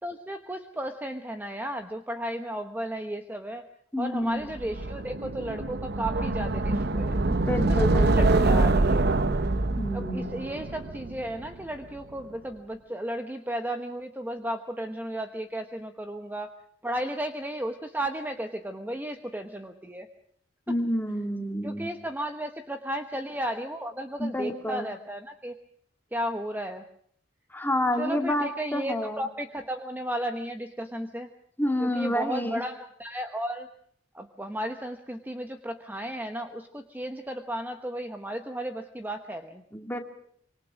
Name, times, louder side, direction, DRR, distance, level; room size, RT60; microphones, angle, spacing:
voice 1, 0.0-3.7 4.0-7.2 7.6-7.8 8.1-9.1 9.9-16.5 16.8-20.1 21.6-25.6 26.1-26.8 28.0-31.3 31.8-33.7 34.1-39.6, right 1 dB, 10° right, 6 dB, 1.1 m, -34 dB
voice 2, 3.9-4.5 7.3-8.4 9.8-10.5 20.7-21.9 24.2-24.9 27.5-29.2 31.6-32.6 39.7-40.0, left 1 dB, 10° left, 4 dB, 2.4 m, -29 dB
sound 1, 4.6-11.6, right 2 dB, 60° right, 0.9 m, -25 dB
25.0 x 24.0 x 6.2 m, 0.64 s
head